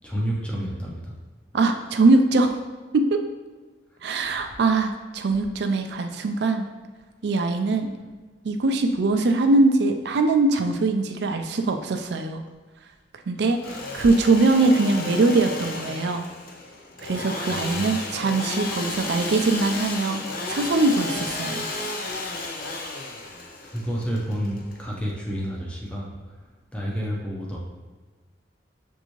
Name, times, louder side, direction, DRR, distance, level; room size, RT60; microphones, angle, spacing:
voice 1, 0.0-1.0 13.6-13.8 17.5-18.0 23.6-26.1 26.7-27.6, equal, 5° left, -4 dB, 0.7 m, -30 dB
voice 2, 1.5-2.5 2.9-3.2 4.0-6.6 7.2-7.9 8.4-12.4 13.3-13.6 13.9-16.2 17.0-20.2 20.5-21.7, right 3 dB, 65° right, 6 dB, 0.4 m, -22 dB
Engine / Sawing, 13.4-25.1, left 2 dB, 55° left, 0.6 m, -33 dB
6.6 x 2.6 x 3.0 m, 1.4 s
head